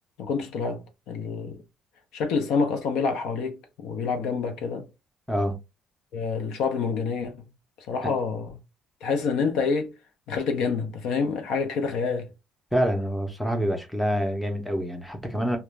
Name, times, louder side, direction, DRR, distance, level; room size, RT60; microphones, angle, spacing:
voice 1, 0.2-1.6 2.1-4.9 6.1-7.4 7.9-8.5 9.0-9.9 10.3-12.3, left 5 dB, 75° left, 0.7 m, -27 dB
voice 2, 5.3-5.6 8.0-8.1 12.7-15.6, equal, ahead, 0.6 m, -26 dB
2.4 x 2.2 x 3.1 m
cardioid pair, 150°, 0 cm